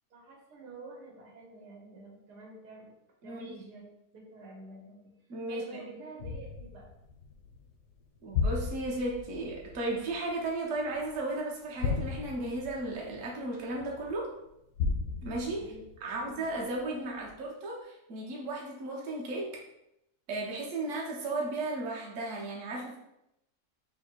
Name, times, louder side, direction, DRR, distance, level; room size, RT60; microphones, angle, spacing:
voice 1, 0.1-2.9 3.2-5.1 5.5-6.9 15.6-16.7, right 2 dB, 90° right, -1 dB, 1.5 m, -48 dB
voice 2, 3.2-3.5 5.3-5.8 8.2-14.3 15.2-15.6 16.0-19.5 20.3-23.0, right 2 dB, 55° right, -3 dB, 1.1 m, -35 dB
sound 1, 6.2-11.2 11.7-14.1 14.7-16.8 17.3-17.4, left 5 dB, 85° left, 1.3 m, -35 dB
3.3 x 2.7 x 4.4 m, 0.84 s
omnidirectional pair, 1.7 m